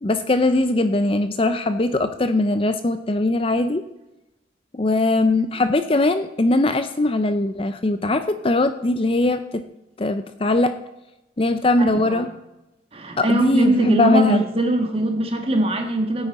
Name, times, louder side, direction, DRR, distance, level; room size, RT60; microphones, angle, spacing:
voice 1, 0.0-3.8 4.7-9.6 10.0-10.7 11.4-12.3 13.2-14.4, left 2 dB, 30° left, 10 dB, 0.5 m, -20 dB
voice 2, 11.8-12.2 12.9-16.3, right 1 dB, 30° right, 4 dB, 1.5 m, -21 dB
16.0 x 9.1 x 4.2 m, 0.96 s
head